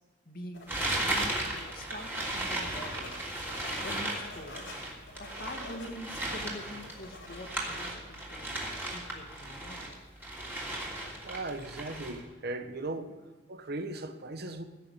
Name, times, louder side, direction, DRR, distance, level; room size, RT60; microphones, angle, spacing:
voice 1, 0.3-3.1 3.8-4.7 5.2-8.5 8.8-9.9, left 1 dB, 55° left, 2.2 m, -45 dB
sound 1, 0.5-7.5, left 2 dB, 80° left, 3.8 m, -49 dB
sound 2, 0.7-9.9 10.2-12.2, right 1 dB, 10° right, 3.0 m, -36 dB
voice 2, 11.2-13.2 13.5-14.6, right 2 dB, 60° right, 1.0 m, -37 dB
16.0 x 6.7 x 8.1 m
head